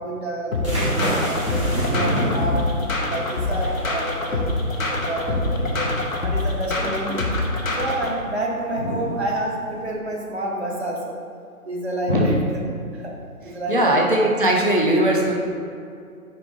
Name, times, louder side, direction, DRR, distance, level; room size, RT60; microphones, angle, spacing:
voice 1, 0.0-2.7 3.1-5.9 6.2-7.3 7.7-11.2 11.6-12.6 12.9-13.2 13.4-14.2, right 1 dB, 45° right, -3 dB, 1.2 m, -29 dB
sound 1, 0.5-8.1, left 2 dB, 60° left, 1.1 m, -25 dB
sound 2, 0.5-9.8, right 1 dB, 20° right, 1.3 m, -33 dB
voice 2, 0.7-3.2 5.4-5.9 8.8-9.0 12.1-12.3 13.7-15.4, right 1 dB, 35° left, 0 dB, 0.5 m, -22 dB
5.2 x 4.2 x 5.0 m, 2.4 s
figure-of-eight pair, 165°, 44 cm